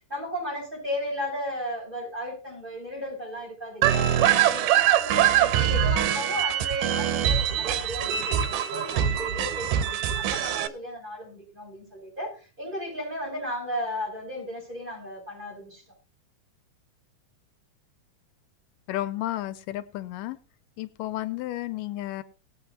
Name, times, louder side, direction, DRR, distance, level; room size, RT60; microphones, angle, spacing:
voice 1, 0.1-4.7 5.0-15.8, equal, 15° right, -4 dB, 7.5 m, -35 dB
sound 1, 3.8-10.7, right 10 dB, 90° right, 2.4 m, -23 dB
voice 2, 18.9-20.4 20.8-22.2, left 15 dB, 85° left, 13 dB, 2.3 m, -32 dB
19.0 x 8.4 x 2.9 m, 0.35 s
omnidirectional pair, 3.7 m